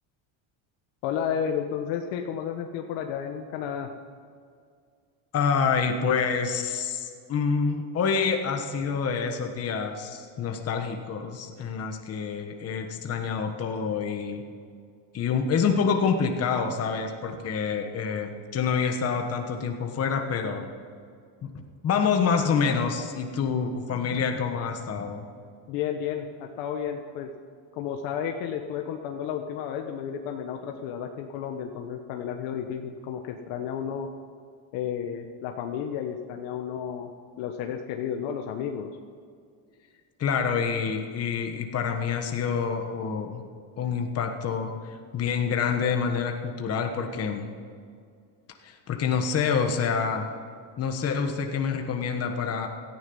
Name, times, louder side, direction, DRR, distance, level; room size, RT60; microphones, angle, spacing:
voice 1, 1.0-3.9 25.7-27.3 27.7-34.1 34.7-37.1 37.4-38.9, left 8 dB, 75° left, 4 dB, 1.3 m, -32 dB
voice 2, 5.3-14.4 15.1-20.7 21.4-21.5 21.8-25.2 40.2-43.4 43.8-44.7 45.1-47.5 48.6-50.2 50.8-52.7, left 6 dB, 30° left, 4 dB, 1.3 m, -27 dB
17.0 x 14.0 x 5.5 m, 2.2 s
cardioid pair, 150°, 45 cm